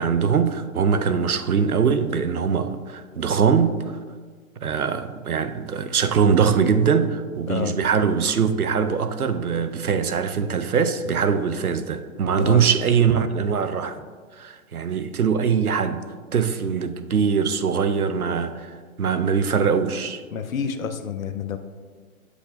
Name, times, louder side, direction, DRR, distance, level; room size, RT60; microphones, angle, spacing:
voice 1, 0.0-4.0 4.6-14.0 14.3-16.1 16.3-20.2, right 6 dB, 90° right, 10 dB, 0.6 m, -22 dB
voice 2, 7.5-7.8 12.4-12.6 20.3-21.6, left 7 dB, 70° left, 9 dB, 0.6 m, -28 dB
8.0 x 4.9 x 2.5 m, 1.5 s
figure-of-eight pair, 120°, 43 cm